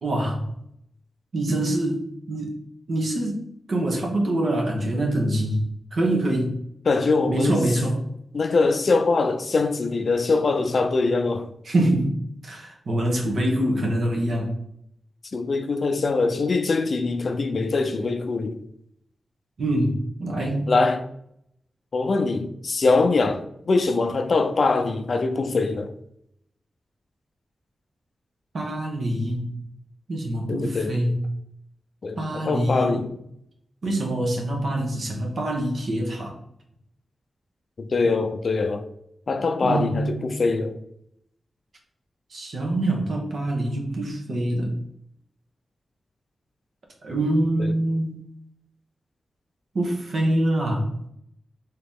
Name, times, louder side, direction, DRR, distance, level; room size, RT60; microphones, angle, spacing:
voice 1, 0.0-0.5 1.3-2.5 2.9-3.4 3.7-5.6 5.9-6.6 7.3-8.0 11.7-12.1 12.4-14.5 19.6-20.7 28.5-29.5 30.1-31.2 32.2-33.0 33.8-36.3 39.6-40.3 42.3-44.7 47.0-48.2 49.7-50.9, right 1 dB, 70° right, 1.0 m, -25 dB
voice 2, 6.9-7.6 8.3-11.5 15.3-18.6 20.7-21.1 21.9-25.9 30.5-31.0 32.0-33.1 37.8-38.8 39.3-40.8 47.6-47.7, left 3 dB, 60° left, 0.4 m, -23 dB
3.8 x 2.8 x 3.6 m
wide cardioid pair, 80°, 0 cm